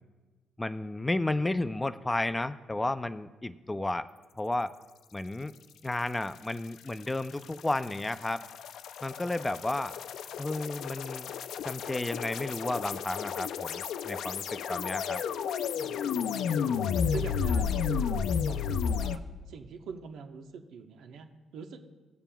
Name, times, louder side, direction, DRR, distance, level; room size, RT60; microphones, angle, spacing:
voice 1, 0.6-4.1 4.4-4.7 5.1-5.5 5.8-8.4 9.0-9.9 10.4-11.3 11.6-15.2, left 2 dB, 15° left, 12 dB, 0.4 m, -32 dB
sound 1, 6.9-19.2, left 7 dB, 75° left, 0.4 m, -32 dB
voice 2, 15.7-16.8 17.1-21.9, right 5 dB, 80° right, 5 dB, 0.9 m, -44 dB
18.5 x 7.1 x 2.3 m, 1.3 s
cardioid pair, 90°, 0 cm